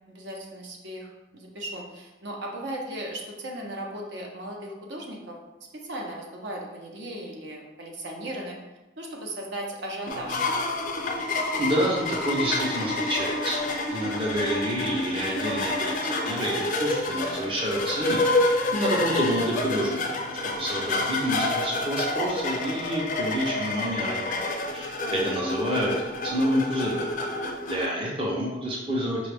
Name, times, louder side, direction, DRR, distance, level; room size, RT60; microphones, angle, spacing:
voice 1, 0.1-5.4 5.7-8.6 9.0-10.4 25.0-25.2, right 1 dB, 70° right, -1 dB, 0.7 m, -37 dB
sound 1, 10.1-27.9, left 2 dB, 45° left, 0.4 m, -28 dB
voice 2, 11.2-20.2 20.4-24.5 24.7-27.1 27.5-29.2, equal, 30° right, -3 dB, 0.6 m, -28 dB
5.0 x 2.3 x 3.3 m, 1.1 s
head